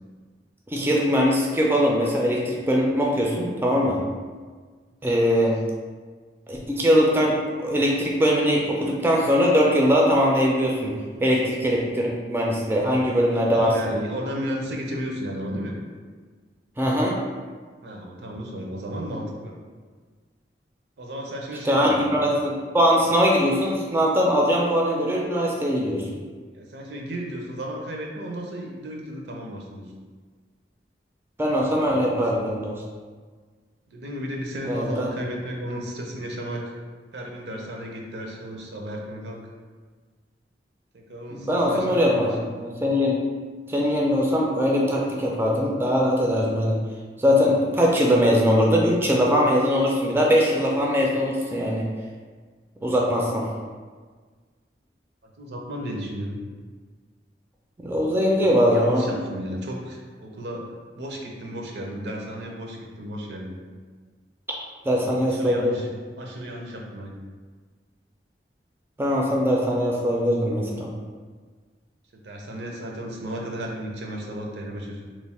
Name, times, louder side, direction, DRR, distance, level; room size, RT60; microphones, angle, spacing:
voice 1, 0.7-4.0 5.0-5.6 6.5-7.4 7.6-10.9 11.2-13.7 16.8-17.1 21.6-26.1 31.4-32.8 34.7-35.2 41.3-43.2 43.7-46.8 47.2-51.9 52.8-53.5 57.8-59.2 64.9-65.8 69.0-70.9, equal, 15° right, -2 dB, 0.3 m, -21 dB
voice 2, 13.3-15.8 17.8-19.6 21.0-22.2 26.5-29.9 31.7-32.5 33.9-36.8 37.1-39.4 40.9-42.7 55.4-56.4 58.3-63.6 64.9-65.9 66.2-67.1 72.2-75.0, equal, 75° right, 0 dB, 0.6 m, -34 dB
3.1 x 2.1 x 4.1 m, 1.5 s
head